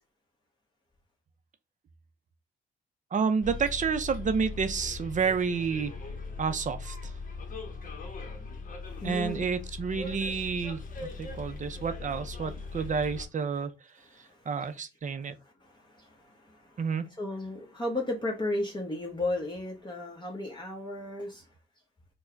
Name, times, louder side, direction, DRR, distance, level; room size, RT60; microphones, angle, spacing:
voice 1, 3.1-5.9 6.4-7.1 9.0-10.8 11.2-13.7 14.5-15.3 16.8-17.0, right 5 dB, 40° right, 0.7 m, -29 dB
Bus, 3.4-13.3, left 3 dB, 45° left, 1.2 m, -40 dB
voice 2, 8.9-9.4 11.4-11.7 14.1-14.4 15.1-16.8 17.2-21.4, left 2 dB, 20° left, 1.2 m, -35 dB
4.4 x 2.3 x 4.5 m
cardioid pair, 90°, 20 cm